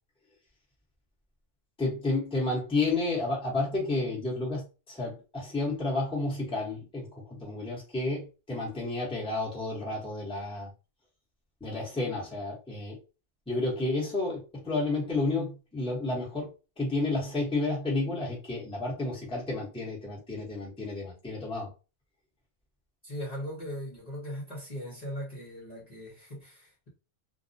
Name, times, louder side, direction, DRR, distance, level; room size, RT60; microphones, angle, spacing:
voice 1, 1.8-10.7 11.6-13.0 13.5-16.5 16.8-21.7, left 2 dB, 5° left, 0.8 m, -31 dB
voice 2, 23.0-26.9, equal, 40° left, 0.8 m, -39 dB
2.4 x 2.0 x 2.6 m
omnidirectional pair, 1.3 m